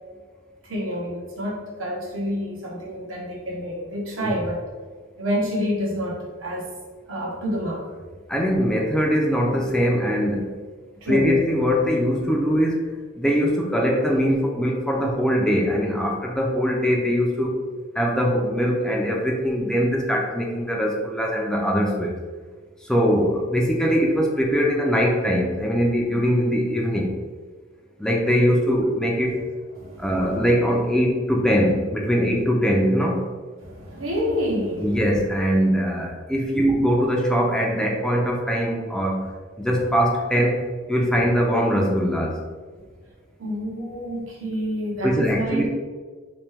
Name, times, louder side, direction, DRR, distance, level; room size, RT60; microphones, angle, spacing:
voice 1, 0.6-4.6 5.2-6.7 7.1-7.8 11.0-11.3 29.7-30.1 33.6-35.0 39.6-39.7 43.4-45.7, equal, 85° right, -3 dB, 1.0 m, -28 dB
voice 2, 8.3-10.5 11.1-12.8 13.2-17.5 18.0-22.2 22.9-27.1 28.0-29.4 30.0-33.2 34.8-39.3 39.6-40.6 40.9-42.4 45.0-45.7, equal, 5° left, -1 dB, 0.4 m, -21 dB
3.2 x 3.0 x 3.4 m, 1.5 s
head